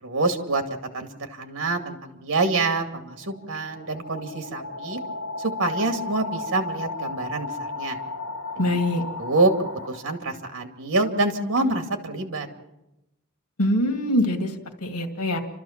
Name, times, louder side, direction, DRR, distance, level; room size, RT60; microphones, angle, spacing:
voice 1, 0.0-0.6 0.9-5.0 5.6-8.0 8.6-8.7 9.2-9.5 9.9-12.5, right 2 dB, 60° right, 6 dB, 2.4 m, -26 dB
sound 1, 3.0-10.5, left 3 dB, 70° left, 2.9 m, -35 dB
voice 2, 8.6-9.0 13.6-14.5 14.8-15.4, left 1 dB, 85° left, 6 dB, 2.2 m, -23 dB
30.0 x 13.5 x 7.3 m, 0.93 s
head